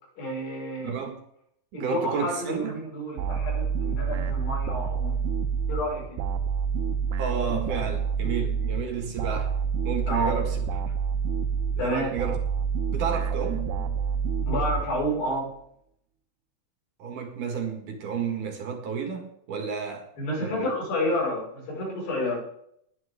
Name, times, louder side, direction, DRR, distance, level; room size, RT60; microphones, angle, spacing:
voice 1, 0.2-1.0 1.7-5.2 5.7-6.3 10.1-10.4 11.8-12.1 14.5-15.6 20.2-22.4, left 1 dB, 85° left, -3 dB, 7.2 m, -29 dB
voice 2, 0.8-1.2 1.7-2.8 7.2-9.6 9.8-10.6 11.8-12.4 12.9-13.7 17.0-20.1 20.4-20.7, right 6 dB, 60° right, 3 dB, 2.8 m, -31 dB
sound 1, 3.2-15.4, right 6 dB, 85° right, 3.0 m, -28 dB
20.0 x 8.9 x 3.6 m, 0.70 s
omnidirectional pair, 4.6 m